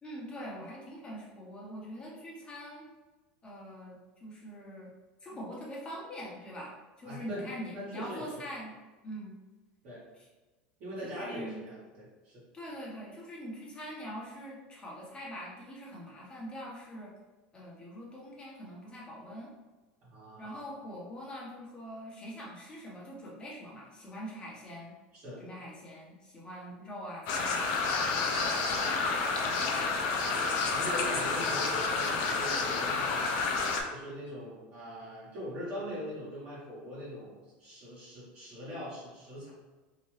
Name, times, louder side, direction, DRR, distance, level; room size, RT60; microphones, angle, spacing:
voice 1, 0.0-2.9 3.4-4.9 5.2-8.7 9.0-9.4 11.0-11.6 12.5-17.1 17.5-19.5 20.4-24.9 25.4-29.7, equal, 20° left, -4 dB, 1.1 m, -43 dB
voice 2, 7.0-7.5 7.7-8.4 9.8-10.0 10.8-12.4 20.0-20.8 25.1-25.4 30.1-33.3 33.9-39.5, equal, 45° right, -9 dB, 1.5 m, -42 dB
sound 1, 27.3-33.8, left 4 dB, 65° left, 0.6 m, -30 dB
2.9 x 2.6 x 3.2 m, 1.2 s
supercardioid pair, 120°, 5 cm